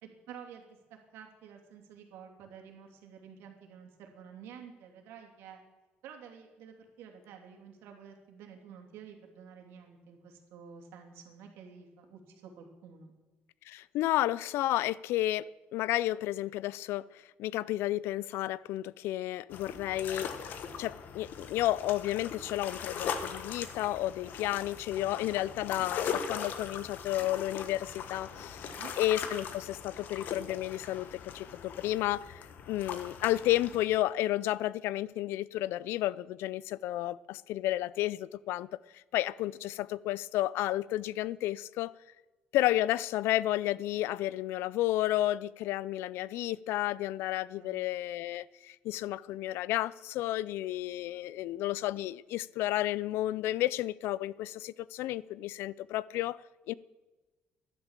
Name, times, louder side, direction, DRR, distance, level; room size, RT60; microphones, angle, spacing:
voice 1, 0.0-5.6 6.0-13.1 24.2-24.3 28.4-29.0 47.2-47.9, right 7 dB, 90° right, 2.9 m, -51 dB
voice 2, 13.7-20.3 20.8-28.6 29.0-38.7 38.9-41.9 42.5-56.4 56.7-56.8, left 15 dB, 85° left, 0.4 m, -32 dB
sound 1, 19.5-33.8, left 7 dB, 50° left, 1.3 m, -40 dB
13.0 x 11.0 x 7.4 m
cardioid pair, 170°, 4 cm